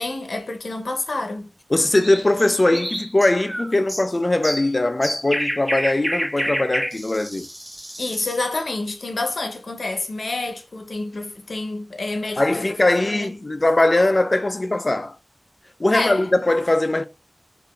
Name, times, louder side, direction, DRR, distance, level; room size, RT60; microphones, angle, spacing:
voice 1, 0.0-1.5 8.0-12.8 13.0-13.3 15.9-16.3, left 2 dB, 75° left, 0.6 m, -28 dB
voice 2, 1.7-7.5 12.4-15.2 15.8-17.0, left 2 dB, 35° left, 0.3 m, -20 dB
sound 1, 1.9-8.5, equal, 10° right, 0.7 m, -29 dB
4.9 x 2.5 x 2.2 m
wide cardioid pair, 80°, 0 cm